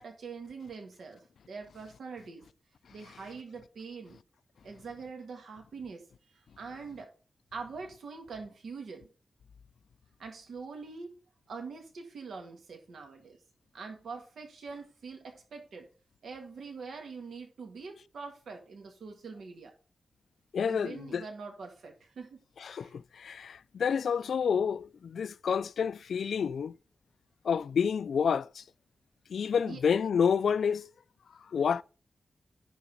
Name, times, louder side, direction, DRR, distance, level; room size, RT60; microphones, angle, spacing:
voice 1, 0.0-2.4 2.9-4.2 4.6-7.1 7.5-9.1 10.2-11.2 11.5-13.4 13.7-15.9 16.2-19.7 20.7-22.4 22.8-23.0 29.6-29.8, right 4 dB, 85° right, 1.9 m, -44 dB
voice 2, 20.5-21.2 22.6-26.7 27.4-28.6 29.3-30.9 31.5-31.8, left 7 dB, 85° left, 0.3 m, -29 dB
10.5 x 4.0 x 5.3 m
wide cardioid pair, 135°, 0 cm